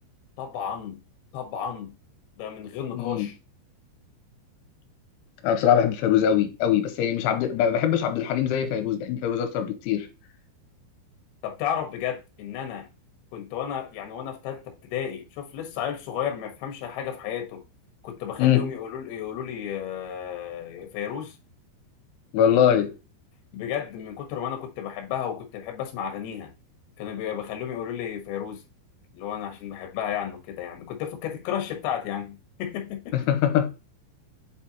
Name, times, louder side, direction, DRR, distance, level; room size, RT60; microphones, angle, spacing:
voice 1, 0.4-1.0 1.3-1.9 2.4-3.4 11.4-12.9 13.3-17.6 18.0-21.4 23.5-26.5 27.0-28.6 29.1-33.2, left 9 dB, 65° left, 2.8 m, -33 dB
voice 2, 3.0-3.3 5.4-10.1 18.4-18.7 22.3-22.9 33.1-33.8, left 9 dB, 85° left, 3.1 m, -22 dB
7.7 x 4.4 x 2.8 m
omnidirectional pair, 5.6 m